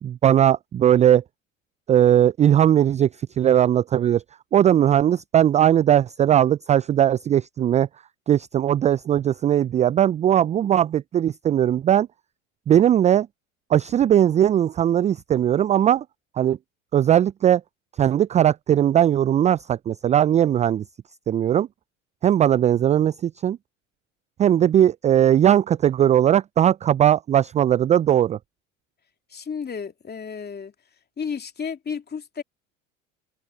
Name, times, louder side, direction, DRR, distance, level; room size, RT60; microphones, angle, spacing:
voice 1, 0.0-1.2 1.9-4.2 4.5-7.9 8.3-12.1 12.7-13.3 13.7-16.0 16.4-16.6 16.9-17.6 18.0-20.8 21.3-21.7 22.2-23.6 24.4-28.4, right 10 dB, 20° right, 0.4 m, -19 dB
voice 2, 29.3-30.7 31.2-32.4, left 6 dB, 25° left, 2.7 m, -32 dB
figure-of-eight pair, 70°, 40 cm